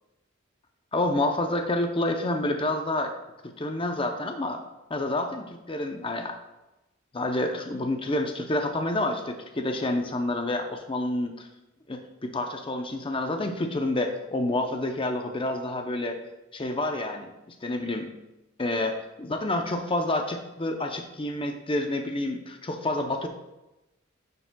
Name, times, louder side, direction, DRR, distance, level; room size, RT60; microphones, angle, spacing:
voice 1, 0.9-3.1 3.4-4.6 4.9-6.4 7.1-11.5 11.9-16.2 16.5-18.1 18.6-23.3, left 1 dB, 25° left, 5 dB, 0.6 m, -28 dB
10.0 x 6.8 x 2.2 m, 0.98 s
head